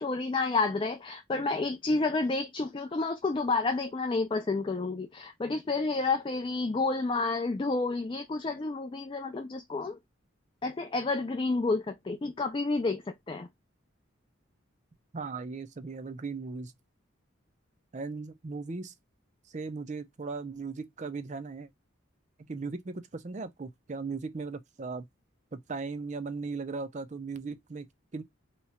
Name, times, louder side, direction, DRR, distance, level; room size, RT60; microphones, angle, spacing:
voice 1, 0.0-10.0 10.6-13.5, left 3 dB, 25° left, 0.3 m, -30 dB
voice 2, 15.1-16.7 17.9-18.9 19.5-21.7 22.4-25.1 25.5-27.9 28.1-28.2, right 4 dB, 35° right, 0.5 m, -37 dB
2.9 x 2.3 x 4.2 m
head